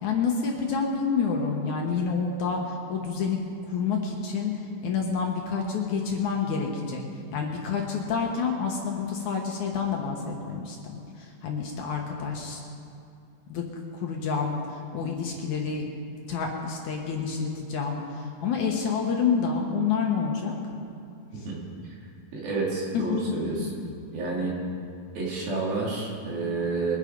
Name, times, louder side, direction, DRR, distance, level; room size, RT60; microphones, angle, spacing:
voice 1, 0.0-3.4 3.7-7.0 7.3-12.6 13.5-13.6 14.0-14.6 14.9-15.9 16.3-20.6 21.4-21.5 22.9-23.2, left 5 dB, 65° left, 0 dB, 2.2 m, -28 dB
voice 2, 22.3-23.6 24.1-24.5 25.2-27.0, right 3 dB, 75° right, -4 dB, 4.5 m, -29 dB
23.0 x 8.2 x 5.2 m, 2.5 s
omnidirectional pair, 4.3 m